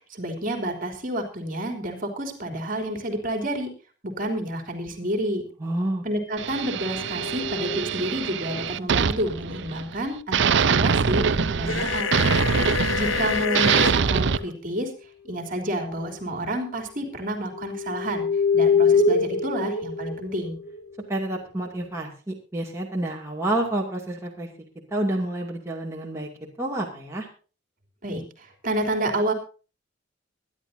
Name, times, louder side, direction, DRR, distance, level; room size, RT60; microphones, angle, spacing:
voice 1, 0.1-3.7 4.0-5.4 6.0-12.2 12.9-14.9 15.2-18.3 18.5-20.6 28.0-29.3, right 1 dB, 45° right, 5 dB, 3.2 m, -29 dB
voice 2, 5.6-6.0 21.1-24.5 24.9-26.3 26.6-27.3, right 1 dB, 15° right, -2 dB, 2.5 m, -29 dB
sound 1, 6.4-10.0 10.3-14.4, right 6 dB, 65° right, 0.6 m, -24 dB
sound 2, 6.6-8.4 10.7-11.6 12.3-14.5 15.3-15.6 15.9-16.4 17.0-21.8, left 4 dB, 60° left, 2.0 m, -27 dB
sound 3, 11.7-13.9, left 7 dB, 80° left, 0.8 m, -27 dB
24.0 x 11.0 x 2.7 m, 0.36 s
head